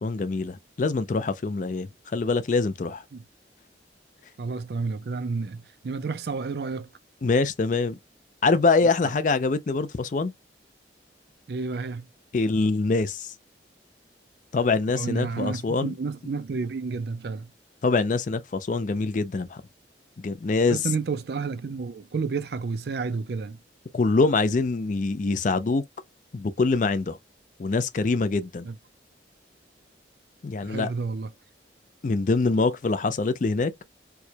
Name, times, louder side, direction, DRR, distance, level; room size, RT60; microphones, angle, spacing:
voice 1, 0.0-3.0 7.2-8.0 8.4-10.3 12.3-13.3 14.5-15.9 17.8-19.6 20.2-20.8 23.9-25.8 26.3-27.2 27.6-28.7 30.4-30.9 32.0-33.7, left 3 dB, 45° left, 0.4 m, -24 dB
voice 2, 4.4-6.9 11.5-12.1 14.9-17.5 20.7-23.6 28.6-28.7 30.6-31.3, right 4 dB, 60° right, 0.4 m, -30 dB
4.5 x 2.2 x 2.7 m
head